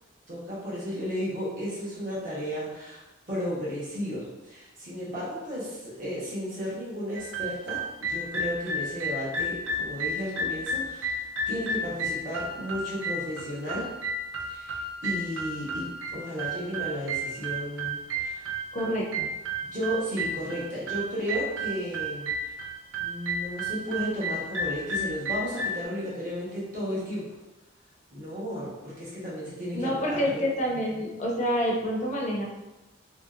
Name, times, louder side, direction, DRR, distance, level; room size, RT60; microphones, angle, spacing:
voice 1, 0.3-3.0 3.3-7.8 8.1-11.2 11.5-13.9 14.5-18.5 19.7-22.5 23.0-27.2 28.1-30.5, equal, 40° right, -7 dB, 1.0 m, -34 dB
sound 1, 7.1-25.8, right 1 dB, 75° right, 0.4 m, -33 dB
voice 2, 18.7-19.3 29.7-32.4, equal, 35° left, -2 dB, 0.4 m, -27 dB
2.7 x 2.7 x 2.4 m, 1.0 s
head